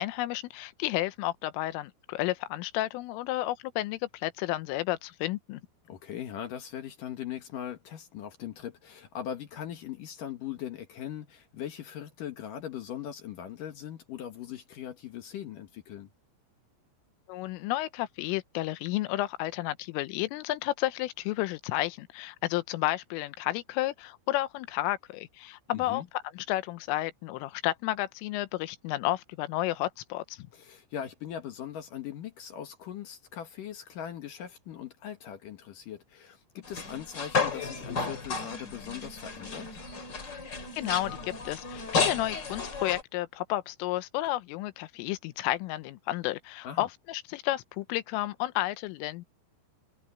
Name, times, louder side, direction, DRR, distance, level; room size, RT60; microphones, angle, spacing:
voice 1, 0.0-5.6 17.3-26.0 26.4-30.5 40.7-49.2, left 16 dB, 85° left, 3.5 m, -32 dB
voice 2, 5.9-16.1 25.7-26.1 30.5-39.7 46.6-46.9, left 10 dB, 65° left, 2.3 m, -40 dB
sound 1, 36.6-43.0, left 4 dB, 30° left, 2.8 m, -33 dB
omnidirectional pair, 5.7 m